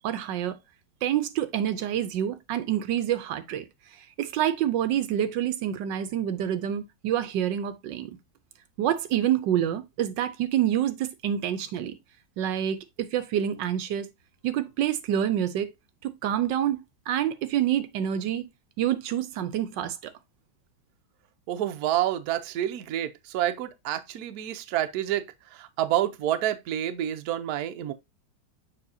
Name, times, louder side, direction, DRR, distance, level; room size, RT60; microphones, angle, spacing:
voice 1, 0.0-0.6 1.0-3.6 4.2-8.1 8.8-12.0 12.4-12.8 13.1-14.1 14.4-15.7 16.0-16.8 17.1-18.4 18.8-20.0, right 10 dB, 85° right, 1.3 m, -27 dB
voice 2, 21.5-25.3 25.5-27.9, right 12 dB, 65° right, 1.1 m, -28 dB
6.7 x 5.5 x 2.7 m
omnidirectional pair, 2.0 m